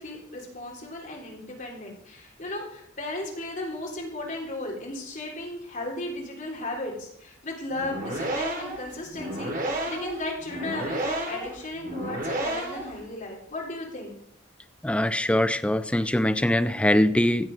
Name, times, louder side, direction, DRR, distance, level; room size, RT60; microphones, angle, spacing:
voice 1, 0.0-14.1, left 2 dB, 40° left, -2 dB, 3.7 m, -35 dB
sound 1, 7.7-13.0, right 1 dB, 45° right, 2.9 m, -31 dB
voice 2, 14.8-17.5, left 1 dB, 5° left, 10 dB, 0.5 m, -22 dB
15.5 x 7.7 x 5.5 m, 0.70 s
head